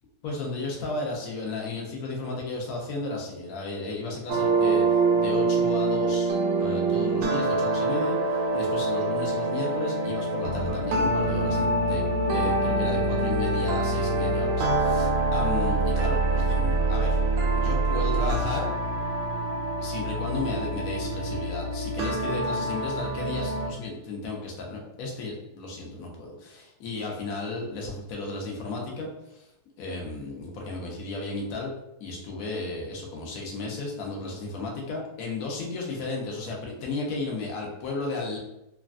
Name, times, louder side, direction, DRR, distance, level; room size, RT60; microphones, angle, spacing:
voice 1, 0.2-6.3 6.6-17.2 17.6-18.7 19.8-29.5 29.8-31.7 32.0-38.4, left 3 dB, 70° left, -1 dB, 0.8 m, -34 dB
sound 1, 4.3-23.7, right 2 dB, 75° right, 1.1 m, -25 dB
3.2 x 2.2 x 2.4 m, 0.89 s
omnidirectional pair, 2.2 m